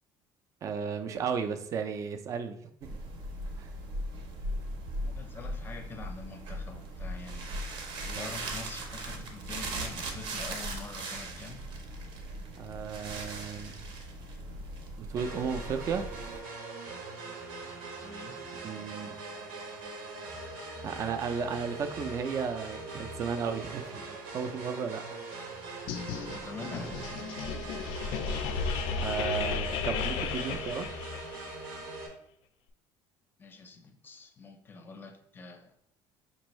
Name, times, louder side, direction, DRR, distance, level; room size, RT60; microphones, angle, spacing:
voice 1, 0.6-2.6 3.6-3.7 8.0-8.3 12.6-13.7 15.0-16.1 18.6-19.2 20.8-24.1 24.3-25.0 26.1-26.3 29.0-30.9, right 6 dB, 35° right, 8 dB, 0.4 m, -34 dB
sound 1, 2.8-16.4, right 1 dB, 65° right, 0.7 m, -39 dB
voice 2, 5.0-7.6 8.2-11.6 18.0-18.4 26.1-27.2 33.4-35.7, left 4 dB, 25° left, 5 dB, 0.5 m, -45 dB
sound 2, 15.2-32.1, right 2 dB, 90° right, 1.0 m, -42 dB
sound 3, 25.9-31.5, left 5 dB, 75° left, 0.4 m, -34 dB
5.3 x 2.6 x 3.0 m, 0.73 s
cardioid pair, 140°, 9 cm